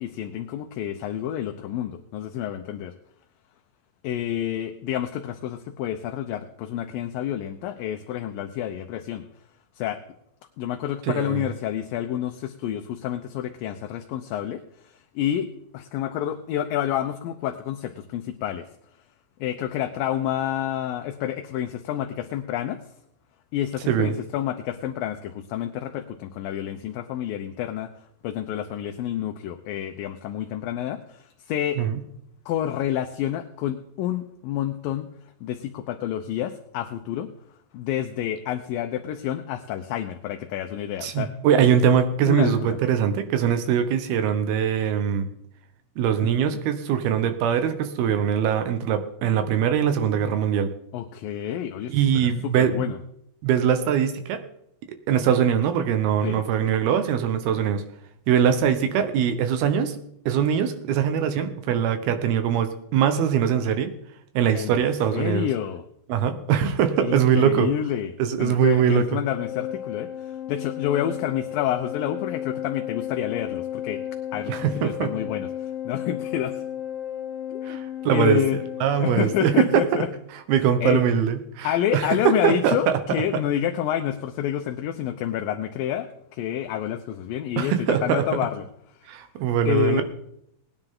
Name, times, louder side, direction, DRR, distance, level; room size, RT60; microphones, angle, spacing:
voice 1, 0.0-2.9 4.0-9.2 9.8-10.0 10.6-18.7 19.4-22.8 23.5-27.9 28.2-31.8 32.5-35.1 35.4-37.3 37.7-41.3 42.3-42.8 46.4-46.6 50.9-53.0 56.2-56.4 64.5-64.8 65.1-65.9 67.0-68.1 68.4-70.1 70.5-74.0 74.3-76.6 77.5-77.8 78.1-78.6 79.0-80.1 80.5-81.0 81.6-88.7 89.0-89.1 89.6-90.0, left 11 dB, 75° left, 6 dB, 2.3 m, -29 dB
voice 2, 11.1-11.5 23.9-24.2 31.8-32.0 41.0-45.3 46.0-50.7 51.9-52.9 53.4-54.4 55.1-57.8 58.3-60.0 60.3-63.9 64.3-65.5 66.1-67.7 68.2-69.2 74.5-75.1 77.7-78.4 78.8-79.8 80.5-82.9 87.6-88.2 89.1-90.0, right 8 dB, 85° right, 9 dB, 3.1 m, -22 dB
Organ, 69.3-80.1, left 11 dB, 45° left, 2.1 m, -34 dB
19.0 x 9.9 x 3.8 m, 0.74 s
omnidirectional pair, 4.4 m